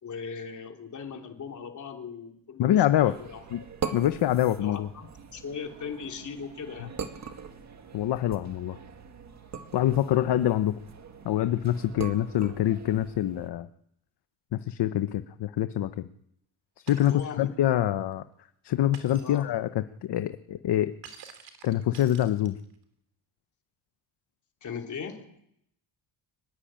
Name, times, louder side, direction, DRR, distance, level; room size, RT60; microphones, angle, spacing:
voice 1, 0.0-3.6 4.6-6.9 17.1-17.9 19.2-19.4 24.6-25.4, left 6 dB, 40° left, 3 dB, 3.2 m, -39 dB
voice 2, 2.6-3.1 3.5-3.6 3.9-4.9 7.9-8.8 9.7-10.8 11.2-13.7 14.5-15.9 16.8-18.2 18.6-20.9 21.6-22.6, left 12 dB, 55° left, 10 dB, 0.9 m, -25 dB
sound 1, 3.0-13.5, right 6 dB, 35° right, 1.8 m, -42 dB
Shatter, 16.9-17.3 18.9-19.4 21.0-22.7, right 7 dB, 65° right, 3.8 m, -49 dB
24.0 x 20.5 x 8.9 m, 0.76 s
cardioid pair, 175°, 48 cm